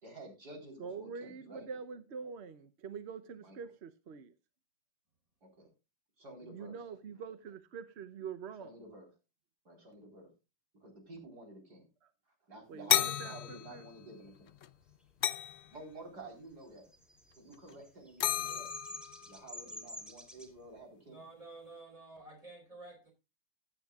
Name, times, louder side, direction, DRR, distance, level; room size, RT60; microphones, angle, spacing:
voice 1, 0.0-1.7 3.4-3.6 5.4-5.7 6.2-6.8 8.6-9.1 9.6-10.3 10.8-11.9 12.5-14.5 15.7-16.9 17.4-18.7 19.2-21.2, right 2 dB, 65° right, 4.6 m, -51 dB
voice 2, 0.8-4.3 6.4-8.8 12.7-13.8, right 6 dB, 50° right, 0.9 m, -45 dB
sound 1, 12.9-14.1 14.4-14.7 15.2-15.7 17.5-17.7 18.2-19.4, left 10 dB, 65° left, 0.6 m, -33 dB
Bird vocalization bird call bird song, 16.8-20.5, left 1 dB, ahead, 2.3 m, -47 dB
voice 3, 21.0-23.1, right 2 dB, 20° right, 4.8 m, -51 dB
16.0 x 9.9 x 2.3 m
omnidirectional pair, 1.8 m